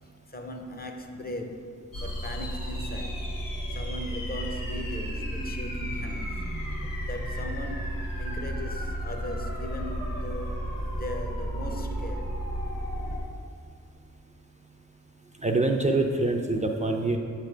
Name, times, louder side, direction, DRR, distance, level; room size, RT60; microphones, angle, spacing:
voice 1, 0.3-3.3 3.7-6.4 7.0-10.6 10.9-12.3, left 1 dB, 30° left, 4 dB, 0.5 m, -38 dB
sound 1, 1.9-13.2, equal, 85° left, 1.2 m, -33 dB
voice 2, 15.4-17.2, right 2 dB, 20° right, 2 dB, 0.4 m, -25 dB
7.4 x 3.3 x 4.9 m, 2.3 s
wide cardioid pair, 95°, 33 cm